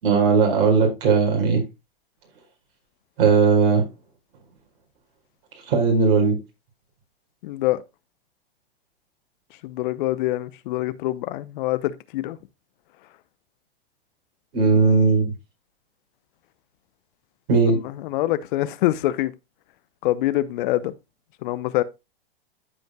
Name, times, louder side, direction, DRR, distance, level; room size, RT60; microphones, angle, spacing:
voice 1, 0.0-1.6 3.2-3.8 5.7-6.4 14.5-15.3 17.5-17.8, right 4 dB, 60° right, 4.8 m, -18 dB
voice 2, 7.4-7.8 9.6-12.4 17.7-19.3 20.0-20.9 21.4-21.8, left 16 dB, 55° left, 0.8 m, -25 dB
14.0 x 5.2 x 2.3 m
hypercardioid pair, 115°, 31 cm